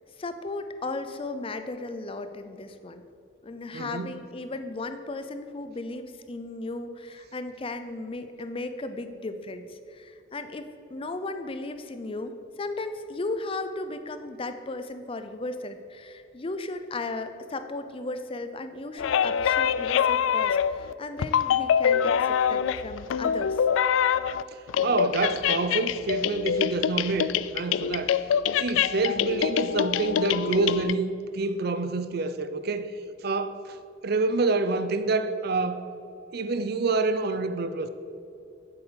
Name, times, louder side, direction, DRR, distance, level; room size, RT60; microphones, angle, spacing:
voice 1, 0.2-3.0 3.4-23.6, left 2 dB, 30° left, 0.5 m, -36 dB
voice 2, 3.7-4.1 24.5-28.2 28.6-32.9 33.2-33.8 34.0-35.8 36.3-37.9, right 3 dB, 55° right, 0.5 m, -27 dB
sound 1, 19.0-20.9 21.2-24.4 24.7-30.9, left 8 dB, 90° left, 0.3 m, -25 dB
7.9 x 7.6 x 6.3 m
head